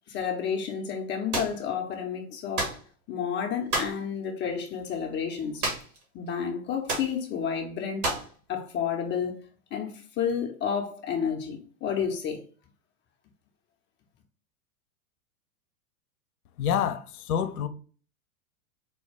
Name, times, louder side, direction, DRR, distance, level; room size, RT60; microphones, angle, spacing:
voice 1, 0.1-2.7 3.1-5.6 6.1-8.1 8.5-9.4 9.7-12.4, left 7 dB, 25° left, 0.5 m, -30 dB
sound 1, 1.3-1.6 2.6-2.8 3.7-4.0 5.6-6.0 6.3-6.4 6.9-7.1 8.0-8.3, right 2 dB, 75° right, 1.8 m, -29 dB
voice 2, 16.6-17.7, left 8 dB, 75° left, 0.6 m, -27 dB
4.3 x 2.2 x 3.2 m
hypercardioid pair, 100°, 45 cm